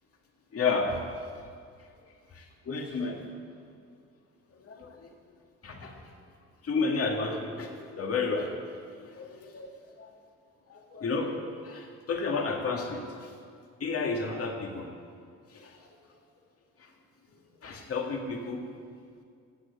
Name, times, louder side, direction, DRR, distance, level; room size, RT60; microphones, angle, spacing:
voice 1, 0.5-1.0 2.4-3.2 4.6-5.1 5.6-5.9 6.6-8.5 9.0-9.7 10.7-11.4 11.6-13.0 13.8-14.9 15.5-15.7 17.6-18.6, left 4 dB, 50° left, 2 dB, 2.1 m, -31 dB
16.5 x 6.5 x 8.3 m, 2.2 s
cardioid pair, 90°, 30 cm